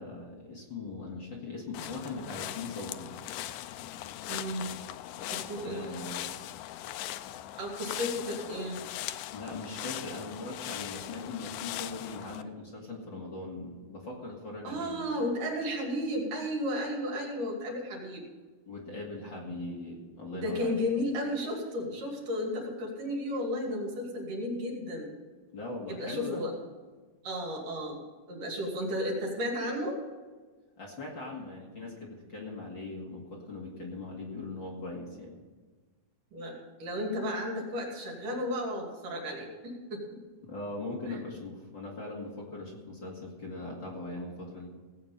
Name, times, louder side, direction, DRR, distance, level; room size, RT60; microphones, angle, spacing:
voice 1, 0.0-3.1 5.6-6.3 9.3-15.1 18.7-20.8 25.5-26.4 30.8-35.4 40.4-44.7, left 2 dB, 40° left, -3 dB, 2.5 m, -40 dB
sound 1, 1.7-12.4, left 13 dB, 80° left, 2.1 m, -40 dB
voice 2, 4.3-4.7 5.3-6.0 7.6-8.8 14.6-18.3 20.3-25.1 25.9-26.5 27.2-28.0 28.3-30.0 36.3-40.2 41.0-41.2, left 1 dB, 70° right, -1 dB, 4.3 m, -33 dB
17.5 x 8.6 x 5.6 m, 1.4 s
omnidirectional pair, 3.8 m